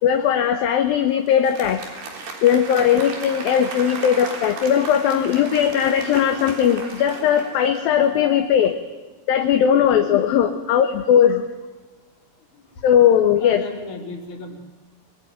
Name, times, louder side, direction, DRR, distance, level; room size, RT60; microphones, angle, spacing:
voice 1, 0.0-1.8 2.4-8.8 9.3-11.4 12.8-13.6, left 9 dB, 70° left, 5 dB, 2.9 m, -18 dB
Applause, 1.3-8.2, right 4 dB, 80° right, 5.7 m, -35 dB
voice 2, 13.4-14.6, left 2 dB, 50° left, 3 dB, 4.6 m, -35 dB
27.0 x 21.5 x 9.3 m, 1.2 s
omnidirectional pair, 4.5 m